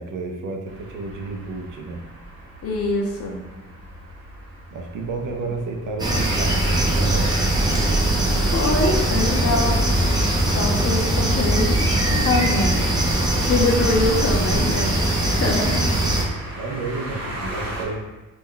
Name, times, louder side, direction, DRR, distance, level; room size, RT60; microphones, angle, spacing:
voice 1, 0.0-2.0 4.7-7.5 16.6-18.0, right 3 dB, 70° right, 2 dB, 0.5 m, -31 dB
sound 1, 0.7-17.8, right 1 dB, 45° right, 0.9 m, -39 dB
voice 2, 2.6-3.4 8.0-9.8 10.4-11.9 12.2-13.0 13.4-15.0 15.2-15.9, left 2 dB, 45° left, 0 dB, 0.5 m, -24 dB
sound 2, 6.0-16.2, right 1 dB, 15° right, 0.3 m, -21 dB
2.3 x 2.0 x 3.7 m, 1.1 s
wide cardioid pair, 140°, 33 cm